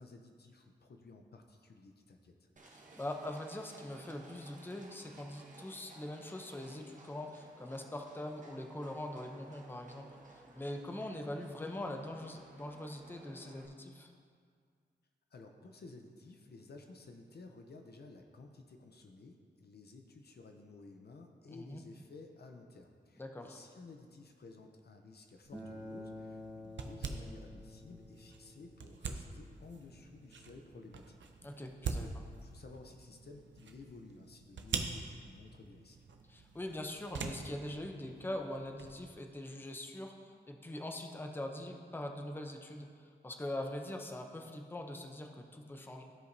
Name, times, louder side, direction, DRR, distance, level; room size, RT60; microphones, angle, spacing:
voice 1, 0.0-2.5 15.3-31.2 31.9-36.0, left 3 dB, 60° left, 4 dB, 0.7 m, -54 dB
Livestock farm animals working animals, 2.6-13.7, right 2 dB, 40° right, 1.0 m, -58 dB
voice 2, 3.0-10.1 10.3-14.1 21.5-21.8 23.2-23.6 31.4-32.1 36.3-46.0, left 1 dB, 10° left, 3 dB, 0.6 m, -42 dB
sound 1, 25.4-39.0, right 5 dB, 75° right, 0.6 m, -45 dB
Acoustic guitar, 25.5-30.7, left 1 dB, 25° left, 1.9 m, -51 dB
14.5 x 5.0 x 2.7 m, 2.1 s
wide cardioid pair, 90°, 19 cm